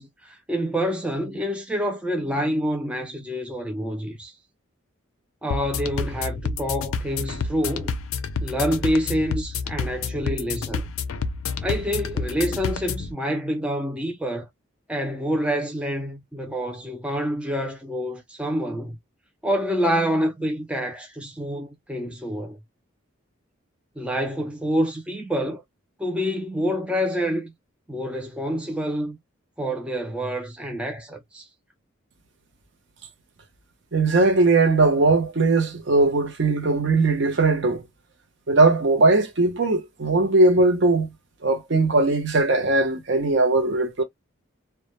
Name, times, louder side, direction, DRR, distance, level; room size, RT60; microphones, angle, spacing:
voice 1, 0.0-4.3 5.4-8.0 8.4-10.9 11.6-14.5 14.9-19.0 19.4-22.6 24.0-25.6 26.0-27.5 27.9-29.2 29.6-31.4, equal, 5° right, 0.3 m, -27 dB
sound 1, 5.5-13.1, left 5 dB, 85° left, 0.4 m, -29 dB
voice 2, 33.9-37.8 38.5-41.1 41.4-44.0, right 3 dB, 60° right, 0.6 m, -19 dB
2.2 x 2.0 x 2.8 m
head